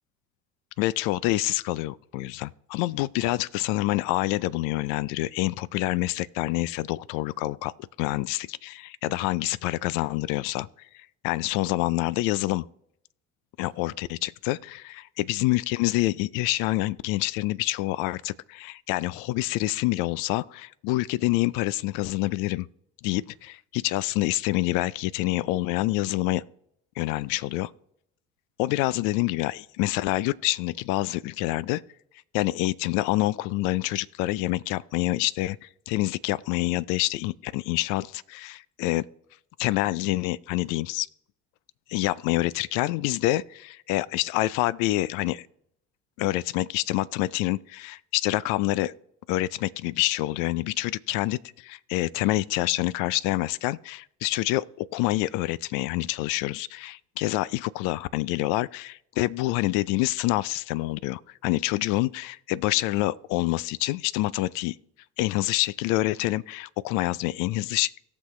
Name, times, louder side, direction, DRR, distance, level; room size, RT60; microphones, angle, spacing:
voice 1, 0.8-10.7 11.2-12.6 13.6-22.7 23.0-26.4 27.0-27.7 28.6-31.8 32.3-39.1 39.6-41.1 41.9-45.5 46.2-48.9 49.3-64.8 65.2-67.9, left 18 dB, 60° left, 0.5 m, -27 dB
18.0 x 6.3 x 3.2 m
hypercardioid pair, 60°, 35 cm